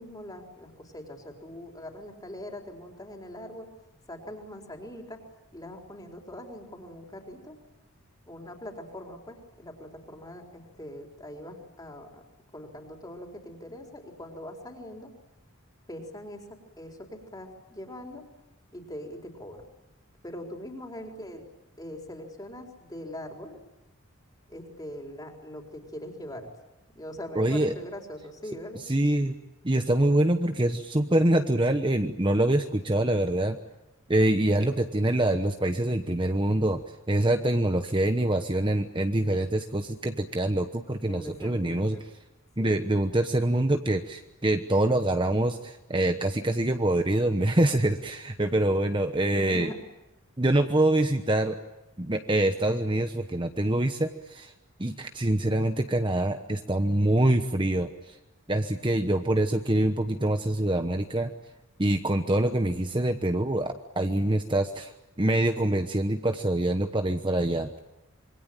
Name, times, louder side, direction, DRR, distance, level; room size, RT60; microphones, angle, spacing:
voice 1, 0.0-3.7 4.1-5.2 5.5-7.6 8.3-12.2 12.5-15.1 15.9-18.2 18.7-19.6 20.2-21.4 21.8-23.6 24.5-26.5 26.9-28.8 41.0-42.0 42.6-42.9 49.3-49.8, left 1 dB, 20° left, 2 dB, 4.5 m, -42 dB
voice 2, 27.3-27.7 28.9-29.3 29.6-33.6 34.1-36.8 37.1-42.0 42.6-49.7 50.4-51.6 52.0-54.5 54.8-58.2 58.5-61.3 61.8-64.9 65.2-67.8, right 1 dB, 25° right, 6 dB, 1.1 m, -25 dB
26.5 x 24.0 x 9.1 m, 0.93 s
head